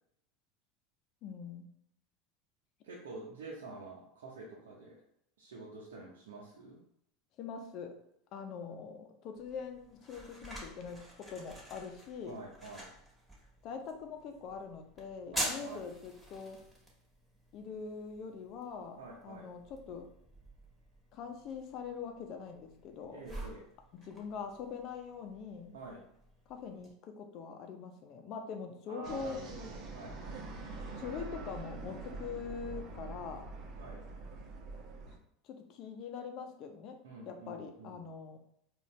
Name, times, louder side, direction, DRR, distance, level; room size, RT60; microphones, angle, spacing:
voice 1, 1.2-1.7 7.4-8.0 8.3-11.0 11.3-12.4 13.6-16.6 17.5-20.1 21.1-23.2 23.9-25.7 26.5-29.4 31.0-33.5 35.4-37.0 37.3-38.4, left 6 dB, 50° left, 5 dB, 0.7 m, -43 dB
voice 2, 2.8-5.0 5.4-6.8 12.3-12.9 15.3-15.8 19.0-19.5 23.1-23.6 25.7-26.0 28.9-30.4 33.8-34.0 37.0-38.1, right 2 dB, 80° right, -4 dB, 0.7 m, -47 dB
sound 1, 9.4-26.9, equal, 10° right, 1.5 m, -47 dB
sound 2, 29.0-35.2, right 3 dB, 50° right, 0.9 m, -44 dB
3.9 x 2.5 x 3.2 m, 0.74 s
hypercardioid pair, 90°, 0 cm